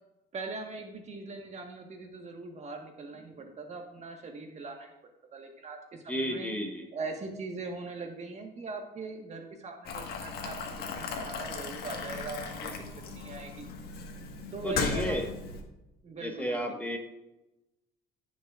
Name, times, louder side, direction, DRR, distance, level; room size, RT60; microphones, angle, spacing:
voice 1, 0.3-4.9 5.3-6.5 6.9-10.6 10.9-12.7 13.1-13.7 14.5-15.2 16.0-16.8, right 3 dB, 40° right, 3 dB, 1.5 m, -40 dB
voice 2, 6.1-6.9 14.6-15.3 16.2-17.0, equal, 10° left, 2 dB, 1.4 m, -32 dB
Boiling, 9.8-15.6, left 4 dB, 70° left, 1.6 m, -37 dB
16.0 x 6.2 x 2.5 m, 0.96 s
cardioid pair, 110°, 17 cm